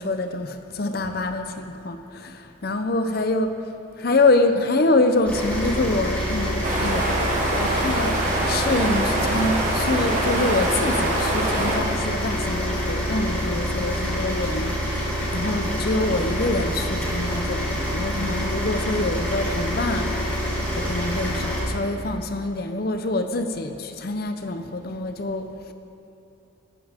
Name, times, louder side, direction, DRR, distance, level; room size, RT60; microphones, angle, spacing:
voice 1, 0.0-3.5 4.0-7.1 7.6-25.5, left 2 dB, 50° left, 8 dB, 0.6 m, -25 dB
sound 1, 5.3-21.6, equal, 5° left, 2.5 m, -27 dB
sound 2, 6.6-11.8, right 1 dB, 40° right, 1.5 m, -25 dB
14.5 x 10.0 x 3.6 m, 2.8 s
head